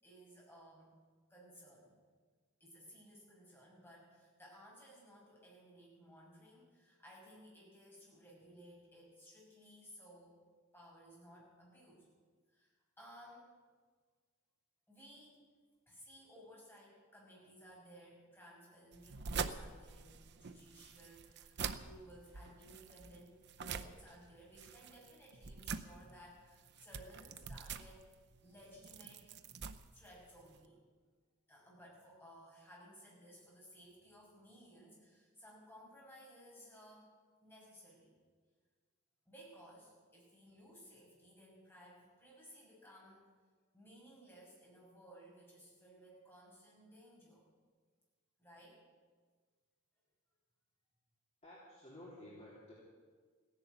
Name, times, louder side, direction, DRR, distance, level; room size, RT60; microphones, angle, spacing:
voice 1, 0.0-1.0 1.3-1.9 2.6-10.4 10.7-12.1 12.5-13.5 14.9-15.4 15.9-28.0 28.4-29.4 29.9-30.8 31.5-37.1 37.4-38.1 39.3-43.3 43.7-47.5 48.4-48.8, equal, 10° left, -5 dB, 6.1 m, -58 dB
sound 1, 18.9-30.6, right 6 dB, 50° right, 0.7 m, -46 dB
voice 2, 51.4-52.7, left 1 dB, 30° left, -6 dB, 3.2 m, -53 dB
16.0 x 11.0 x 8.1 m, 1.5 s
head